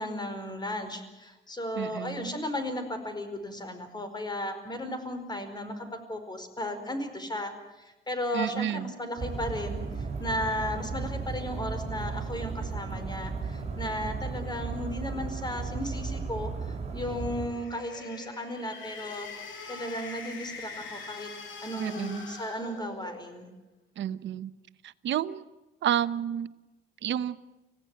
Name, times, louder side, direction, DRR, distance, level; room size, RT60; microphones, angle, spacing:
voice 1, 0.0-19.3 19.7-21.3 21.6-23.5, left 1 dB, 20° left, 9 dB, 4.8 m, -35 dB
voice 2, 1.8-2.3 8.3-8.9 21.8-22.3 24.0-24.5 25.0-25.4 25.8-26.5 27.0-27.4, right 10 dB, 70° right, 14 dB, 1.0 m, -30 dB
sound 1, 9.2-17.5, right 4 dB, 30° right, 6.9 m, -35 dB
sound 2, 17.3-23.4, left 4 dB, 75° left, 6.0 m, -43 dB
25.5 x 16.5 x 9.2 m, 1.1 s
cardioid pair, 90°, 20 cm